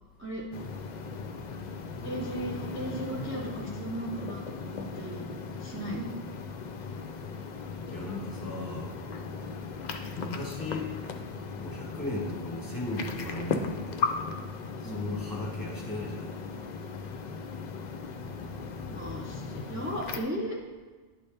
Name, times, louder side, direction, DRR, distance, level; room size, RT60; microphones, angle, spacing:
sound 1, 0.5-20.2, left 5 dB, 55° left, 0.6 m, -37 dB
voice 1, 2.0-5.3 5.6-6.1 14.8-15.1 18.9-20.6, right 1 dB, 15° right, -4 dB, 0.7 m, -36 dB
voice 2, 7.9-9.0 10.1-10.9 11.6-14.2 14.8-16.3, left 2 dB, 20° left, -3 dB, 1.2 m, -36 dB
10.5 x 4.1 x 3.4 m, 1.3 s
omnidirectional pair, 1.1 m